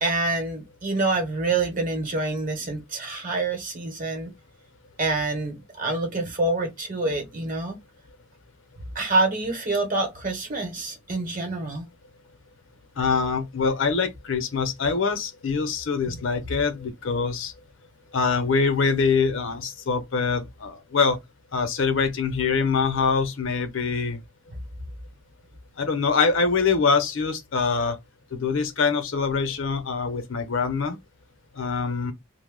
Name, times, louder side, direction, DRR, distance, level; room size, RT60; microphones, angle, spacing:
voice 1, 0.0-4.3 5.0-7.8 8.9-11.8, right 2 dB, 40° right, 0.9 m, -26 dB
voice 2, 13.0-17.5 18.1-21.2 21.5-24.2 25.8-28.0 28.3-31.0 31.5-32.1, left 5 dB, 60° left, 0.6 m, -24 dB
2.7 x 2.0 x 3.6 m
head